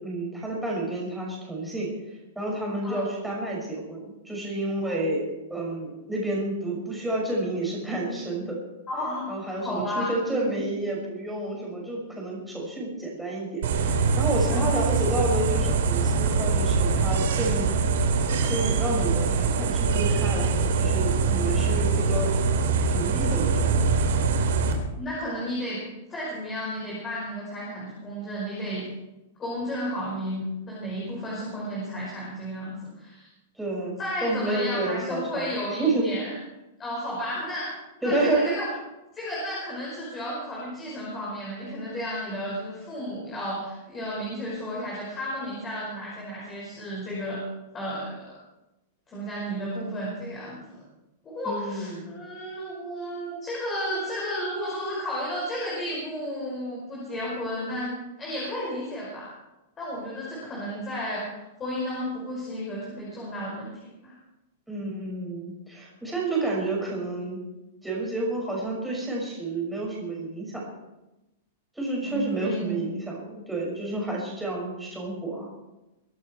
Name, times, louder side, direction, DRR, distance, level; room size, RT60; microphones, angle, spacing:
voice 1, 0.0-1.9 2.3-8.6 9.3-17.7 18.3-22.4 22.7-23.7 33.6-35.5 35.8-36.1 38.0-38.5 51.4-52.1 64.7-67.4 67.8-70.6 71.7-75.5, right 2 dB, 5° right, -3 dB, 6.1 m, -30 dB
voice 2, 8.9-10.1 14.5-14.7 25.0-25.8 26.1-28.8 29.4-33.3 34.0-36.3 36.8-37.7 38.0-38.7 39.1-47.4 47.7-48.3 49.1-50.8 51.2-59.3 59.8-61.3 61.6-63.7 64.0-64.1 72.0-72.8, equal, 15° left, -5 dB, 5.4 m, -33 dB
sound 1, 13.6-24.7, right 4 dB, 75° right, 3.5 m, -23 dB
23.5 x 11.5 x 4.6 m, 0.98 s
supercardioid pair, 160°, 0 cm